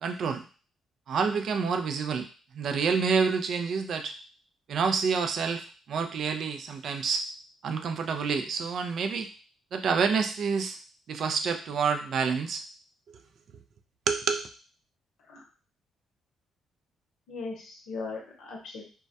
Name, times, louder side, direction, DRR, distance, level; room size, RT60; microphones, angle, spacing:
voice 1, 0.0-0.5 1.1-2.3 2.5-4.1 4.7-7.2 7.6-9.3 9.7-10.8 11.1-12.6 13.1-13.2 14.1-14.5, right 5 dB, 65° right, 6 dB, 0.3 m, -28 dB
voice 2, 17.3-18.8, left 3 dB, 80° left, 0 dB, 0.7 m, -38 dB
2.1 x 2.1 x 2.6 m, 0.37 s
cardioid pair, 90°, 0 cm